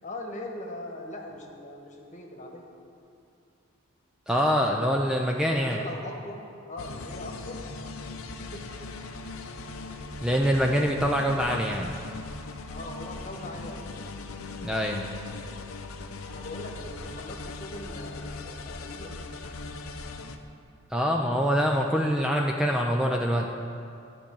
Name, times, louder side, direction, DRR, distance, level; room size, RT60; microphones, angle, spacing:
voice 1, 0.0-2.7 5.4-6.4 6.7-7.6 8.3-8.7 12.7-13.8 16.2-19.6, left 1 dB, 35° left, 1 dB, 1.4 m, -40 dB
voice 2, 4.3-5.8 10.2-11.9 14.6-15.1 20.9-23.5, equal, 5° right, 0 dB, 0.5 m, -25 dB
sound 1, 6.8-20.4, left 3 dB, 85° left, 0.8 m, -39 dB
13.0 x 5.4 x 8.6 m, 2.5 s
head